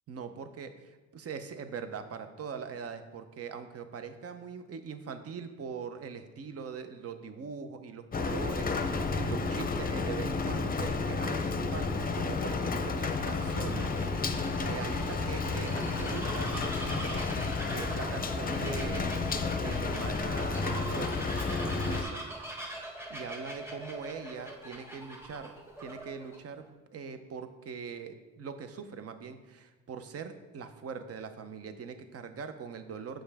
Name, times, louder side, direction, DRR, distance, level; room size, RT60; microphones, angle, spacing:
voice 1, 0.1-14.2 14.6-22.3 23.1-25.5 25.8-26.6 26.9-33.2, right 6 dB, 50° right, 9 dB, 0.7 m, -42 dB
Rain, 8.1-22.0, left 4 dB, 30° left, 0.6 m, -31 dB
Bird vocalization bird call bird song, 11.6-26.4, right 1 dB, 10° right, 1.3 m, -42 dB
7.4 x 5.4 x 3.5 m, 1.2 s
cardioid pair, 90°, 30 cm